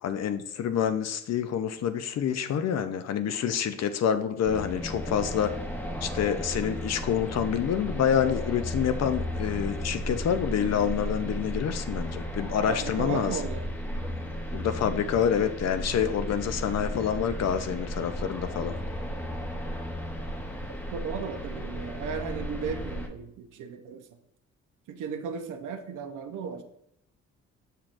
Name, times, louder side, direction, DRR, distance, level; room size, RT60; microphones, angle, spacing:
voice 1, 0.0-5.5 6.0-13.3 14.5-18.8, left 8 dB, 60° left, 9 dB, 0.6 m, -27 dB
sound 1, 4.4-23.1, equal, 5° left, 0.8 m, -34 dB
voice 2, 12.7-13.6 19.1-19.2 20.9-24.1 24.9-26.6, right 6 dB, 80° right, 6 dB, 0.8 m, -35 dB
6.8 x 5.8 x 2.6 m, 0.72 s
cardioid pair, 90°, 30 cm